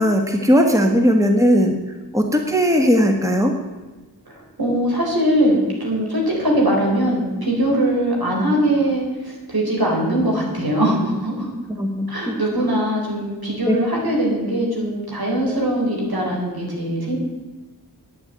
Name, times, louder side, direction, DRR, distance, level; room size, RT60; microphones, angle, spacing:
voice 1, 0.0-1.7 2.1-3.5 11.8-12.7 13.6-13.8 15.4-15.6, equal, 10° right, 3 dB, 1.5 m, -18 dB
voice 2, 4.3-11.5 12.1-17.2, right 1 dB, 65° right, -2 dB, 4.5 m, -21 dB
10.0 x 7.1 x 9.1 m, 1.2 s
cardioid pair, 45°, 40 cm